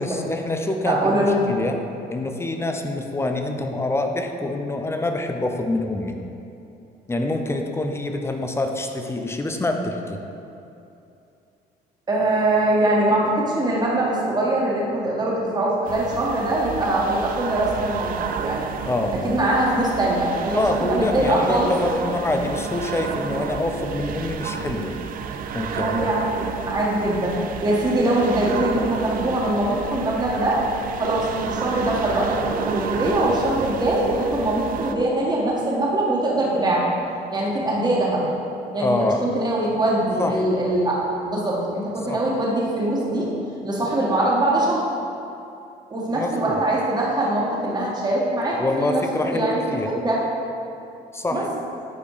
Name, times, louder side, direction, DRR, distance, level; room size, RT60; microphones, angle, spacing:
voice 1, 0.0-1.8 2.1-6.2 7.1-10.2 18.8-19.4 20.5-24.9 25.5-26.1 38.8-39.2 40.2-40.4 42.1-42.2 46.1-46.6 48.6-49.9 51.1-51.5, left 2 dB, 15° left, 4 dB, 0.6 m, -26 dB
voice 2, 0.8-1.4 12.1-18.6 19.2-21.7 25.7-30.6 30.9-36.9 37.3-38.3 38.7-43.3 43.6-44.8 45.9-49.0 49.3-50.2 51.3-51.4, right 1 dB, 25° right, -4 dB, 1.7 m, -22 dB
sound 1, 15.8-34.9, right 7 dB, 55° right, 0.5 m, -31 dB
8.5 x 4.2 x 5.0 m, 2.8 s
cardioid pair, 110°, 17 cm